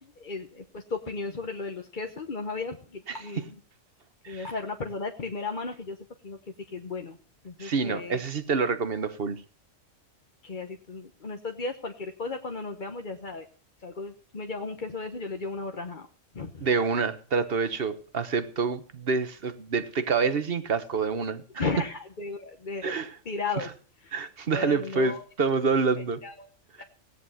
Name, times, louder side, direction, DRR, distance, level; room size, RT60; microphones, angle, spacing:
voice 1, 0.0-3.5 4.3-6.0 6.2-6.4 6.7-7.2 7.4-8.2 10.4-13.5 13.8-16.1 16.3-16.6 21.6-23.0 23.3-23.7 24.0-24.1 24.5-25.2 26.2-26.5 26.8-26.9, left 4 dB, 40° left, 4 dB, 1.2 m, -35 dB
voice 2, 3.1-3.4 4.2-4.5 7.6-9.4 16.6-21.6 22.8-23.2 23.6-23.7 24.1-26.2 26.8-26.9, right 5 dB, 50° right, 11 dB, 1.4 m, -27 dB
17.0 x 10.5 x 5.7 m, 0.40 s
omnidirectional pair, 1.3 m